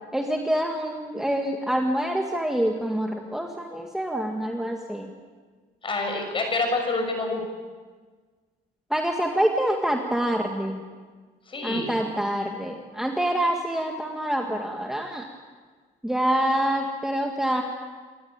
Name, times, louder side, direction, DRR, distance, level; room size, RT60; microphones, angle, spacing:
voice 1, 0.1-5.1 8.9-10.8 11.6-15.2 16.0-17.6, right 1 dB, 5° right, 1 dB, 1.9 m, -26 dB
voice 2, 5.8-7.4 11.5-11.9, left 3 dB, 30° left, 4 dB, 6.8 m, -27 dB
28.0 x 13.5 x 8.8 m, 1.5 s
cardioid pair, 110°, 17 cm